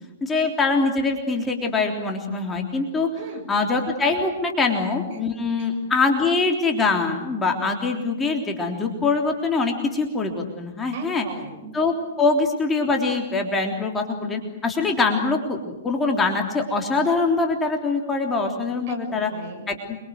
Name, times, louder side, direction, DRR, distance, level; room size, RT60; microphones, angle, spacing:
voice 1, 0.2-3.1 3.5-11.3 11.7-19.3 19.7-20.0, left 3 dB, 10° left, 2 dB, 3.4 m, -23 dB
voice 2, 3.2-3.5 4.7-5.2 5.6-5.7 10.9-11.7 18.9-19.7, right 4 dB, 45° right, 3 dB, 6.3 m, -39 dB
28.5 x 23.5 x 7.8 m, 1.1 s
figure-of-eight pair, 110°, 0 cm